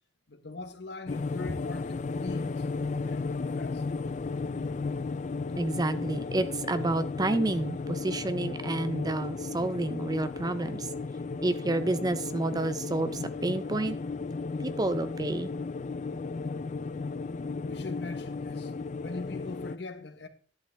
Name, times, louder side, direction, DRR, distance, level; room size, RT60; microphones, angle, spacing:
voice 1, 0.3-3.8 17.6-18.7 19.0-20.3, left 3 dB, 65° left, 1.2 m, -41 dB
sound 1, 1.1-19.8, left 4 dB, 40° left, 0.3 m, -34 dB
voice 2, 5.6-10.9 11.4-14.0 14.6-15.5, right 2 dB, 20° right, 0.4 m, -30 dB
11.5 x 8.1 x 3.4 m
head